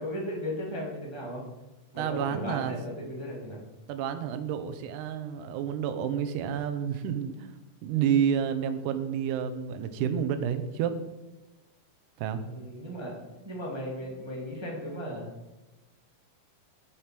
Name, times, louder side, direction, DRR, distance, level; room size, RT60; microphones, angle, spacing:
voice 1, 0.0-1.4 1.9-3.6 12.4-13.1 13.4-15.2, equal, 10° right, -2 dB, 1.3 m, -36 dB
voice 2, 2.0-2.8 3.9-7.6 7.8-11.0 12.2-12.4, right 8 dB, 80° right, 9 dB, 2.3 m, -29 dB
8.0 x 7.4 x 5.8 m, 1.0 s
omnidirectional pair, 3.7 m